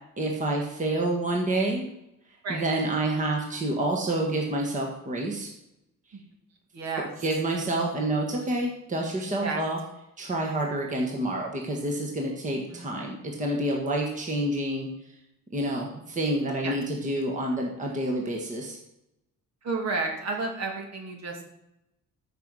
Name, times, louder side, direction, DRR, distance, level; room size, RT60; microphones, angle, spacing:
voice 1, 0.2-1.9 2.5-5.5 7.2-9.8 10.2-14.9 15.5-18.8, right 1 dB, 25° right, 0 dB, 1.5 m, -28 dB
voice 2, 6.7-7.1 9.4-9.6 12.7-12.9 16.6-16.8 19.6-21.4, right 3 dB, 55° right, 2 dB, 2.4 m, -31 dB
14.0 x 5.5 x 6.2 m, 0.85 s
cardioid pair, 180°, 32 cm